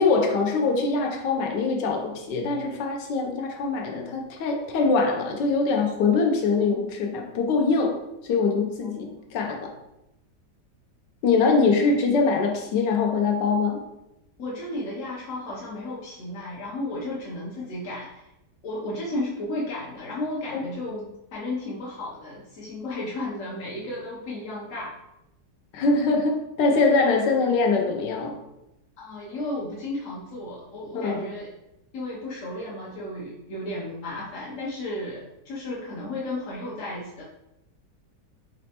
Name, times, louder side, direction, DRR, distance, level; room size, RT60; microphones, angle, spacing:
voice 1, 0.0-8.0 8.2-9.7 11.2-13.8 20.5-20.6 25.7-28.4 30.9-31.2, left 4 dB, 80° left, 3 dB, 1.2 m, -23 dB
voice 2, 14.4-18.3 18.6-24.9 29.0-31.5 31.9-37.2, left 1 dB, 60° left, -5 dB, 0.9 m, -33 dB
4.2 x 3.0 x 2.8 m, 0.87 s
omnidirectional pair, 1.9 m